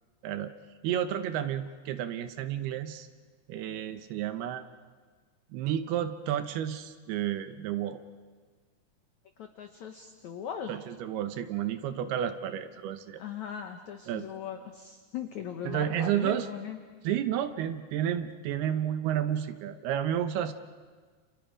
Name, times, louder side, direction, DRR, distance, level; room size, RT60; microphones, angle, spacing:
voice 1, 0.8-3.1 3.5-4.6 5.5-8.0 10.7-13.2 14.1-14.3 15.6-16.5 17.0-20.5, right 10 dB, 75° right, 10 dB, 2.6 m, -31 dB
voice 2, 9.4-10.7 13.2-16.8, left 8 dB, 85° left, 6 dB, 1.6 m, -39 dB
30.0 x 29.5 x 5.0 m, 1.5 s
omnidirectional pair, 5.0 m